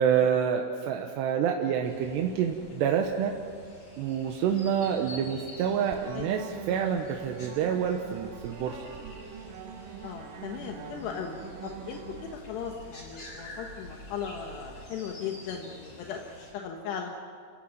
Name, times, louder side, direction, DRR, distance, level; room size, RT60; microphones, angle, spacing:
voice 1, 0.0-3.3 4.0-8.9, right 8 dB, 85° right, 3 dB, 3.3 m, -27 dB
sound 1, 1.8-16.5, left 1 dB, 35° left, 8.2 m, -49 dB
sound 2, 5.5-12.3, right 7 dB, 65° right, 2.5 m, -44 dB
sound 3, 7.6-14.9, right 2 dB, 50° right, 3.1 m, -52 dB
voice 2, 10.0-17.2, left 7 dB, 80° left, 2 dB, 3.5 m, -38 dB
28.5 x 16.5 x 9.1 m, 2.1 s
omnidirectional pair, 4.8 m